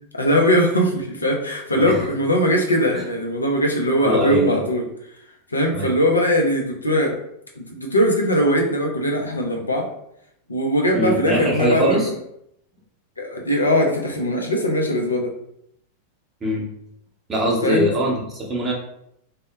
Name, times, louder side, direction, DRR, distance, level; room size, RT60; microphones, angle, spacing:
voice 1, 0.1-4.9 5.5-7.1 7.6-9.9 10.5-12.1 13.2-15.3 17.6-17.9, equal, 80° left, 1 dB, 0.4 m, -20 dB
voice 2, 4.0-4.6 5.7-5.9 10.9-12.1 16.4-16.6 17.3-18.7, equal, 20° right, -3 dB, 0.8 m, -22 dB
2.1 x 2.0 x 3.0 m, 0.75 s
figure-of-eight pair, 90°, 0 cm